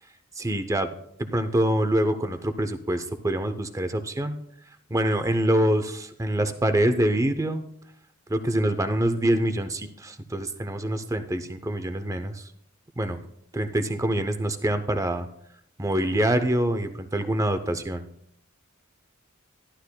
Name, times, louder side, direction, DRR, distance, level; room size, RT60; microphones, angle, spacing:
voice 1, 0.4-0.9 1.2-4.4 4.9-7.6 8.3-12.4 13.0-13.2 13.5-15.3 15.8-18.0, right 1 dB, 15° right, 9 dB, 0.6 m, -25 dB
14.0 x 11.5 x 2.2 m, 0.73 s
head